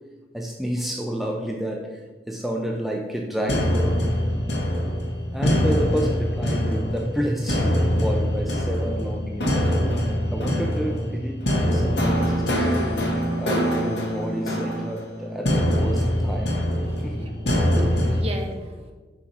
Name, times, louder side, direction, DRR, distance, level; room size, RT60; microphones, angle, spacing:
voice 1, 0.3-4.0 5.3-12.9 13.4-16.6 17.0-17.4, equal, ahead, 0 dB, 0.4 m, -30 dB
sound 1, 3.5-18.2, equal, 65° left, 1.5 m, -23 dB
voice 2, 17.0-18.9, equal, 35° right, 2 dB, 1.0 m, -35 dB
6.1 x 5.6 x 4.1 m, 1.4 s
head